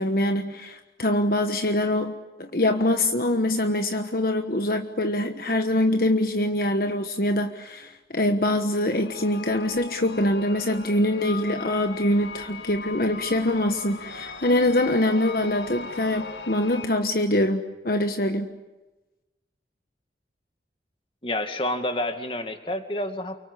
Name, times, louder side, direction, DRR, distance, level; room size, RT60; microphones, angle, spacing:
voice 1, 0.0-2.1 2.4-18.5, left 1 dB, 55° left, 6 dB, 1.3 m, -24 dB
sound 1, 8.9-16.9, left 4 dB, 80° left, 1.8 m, -39 dB
voice 2, 21.2-23.4, left 1 dB, 30° left, 7 dB, 2.3 m, -29 dB
29.0 x 24.5 x 8.4 m, 1.1 s
head